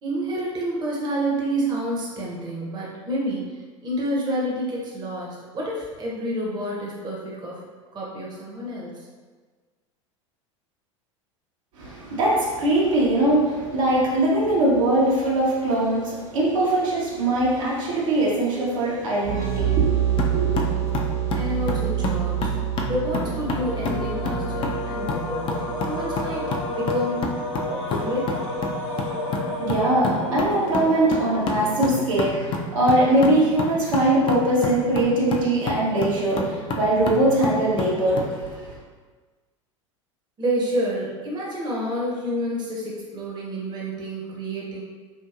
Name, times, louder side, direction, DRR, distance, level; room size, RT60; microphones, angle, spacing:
voice 1, 0.0-7.6 7.9-9.1 21.3-22.5 22.9-27.3 27.7-28.4 40.4-44.8, right 1 dB, 25° right, -4 dB, 0.7 m, -29 dB
voice 2, 11.8-20.6 29.6-38.7, right 1 dB, 75° right, -6 dB, 0.9 m, -21 dB
sound 1, 19.2-26.8, right 11 dB, 60° right, 1.2 m, -27 dB
sound 2, 20.2-38.3, left 3 dB, 30° left, 0.4 m, -30 dB
sound 3, 23.0-32.3, left 2 dB, 85° left, 0.5 m, -31 dB
2.8 x 2.6 x 2.4 m, 1.4 s
hypercardioid pair, 85°, 16 cm